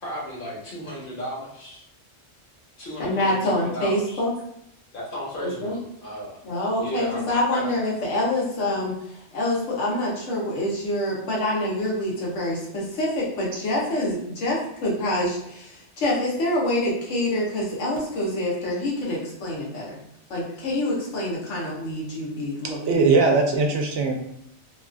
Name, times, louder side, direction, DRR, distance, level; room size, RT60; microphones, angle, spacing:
voice 1, 0.0-1.8 2.8-4.2 4.9-6.4 6.8-7.3 7.5-7.7, equal, 50° left, -4 dB, 1.0 m, -34 dB
voice 2, 3.0-4.3 5.4-5.8 6.4-20.0 20.3-22.8 23.2-23.4, left 1 dB, 85° left, -5 dB, 1.2 m, -26 dB
voice 3, 22.9-24.1, right 4 dB, 70° right, 2 dB, 0.8 m, -19 dB
2.9 x 2.3 x 2.4 m, 0.74 s
omnidirectional pair, 1.2 m